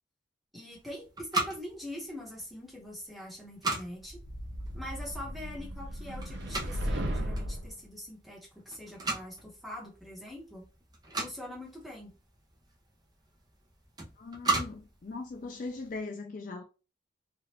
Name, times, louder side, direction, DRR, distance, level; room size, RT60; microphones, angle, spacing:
voice 1, 0.5-4.2 4.7-10.6 11.2-12.1, left 1 dB, ahead, 1.0 m, -43 dB
sound 1, 0.7-16.0, right 2 dB, 20° right, 0.6 m, -39 dB
sound 2, 4.1-7.7, equal, 60° right, 0.6 m, -36 dB
voice 2, 14.2-16.6, left 3 dB, 40° left, 0.3 m, -39 dB
3.3 x 2.4 x 2.9 m
head